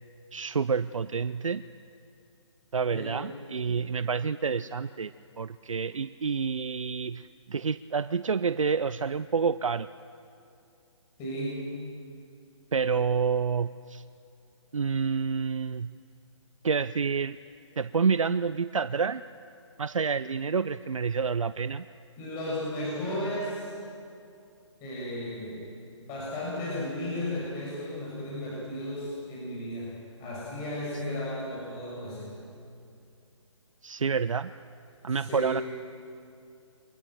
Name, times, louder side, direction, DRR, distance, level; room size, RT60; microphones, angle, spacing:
voice 1, 0.3-1.6 2.7-5.1 5.4-9.9 12.7-14.0 14.7-16.0 16.6-17.4 17.8-19.2 19.8-21.9 33.8-34.5 35.0-35.6, right 5 dB, 85° right, 14 dB, 0.5 m, -28 dB
voice 2, 11.2-11.7 22.2-23.8 24.8-25.6 26.0-29.9 30.2-32.3 35.1-35.6, left 1 dB, 20° left, -6 dB, 7.0 m, -34 dB
24.0 x 20.0 x 7.7 m, 2.5 s
figure-of-eight pair, 145°, 16 cm